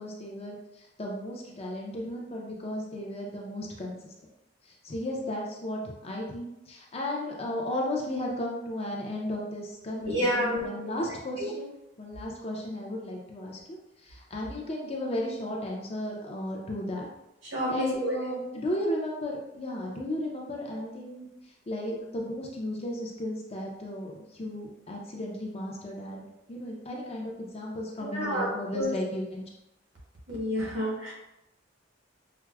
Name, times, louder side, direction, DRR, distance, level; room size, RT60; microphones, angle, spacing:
voice 1, 0.0-4.1 4.7-13.8 14.0-17.1 17.7-21.3 21.7-29.5, left 1 dB, 30° left, -1 dB, 0.5 m, -35 dB
voice 2, 10.0-10.8 11.4-11.5 17.4-18.1 18.5-18.6 28.0-28.5 28.7-29.0 30.3-31.1, equal, 70° right, -3 dB, 1.0 m, -29 dB
4.5 x 2.0 x 2.3 m, 0.90 s
head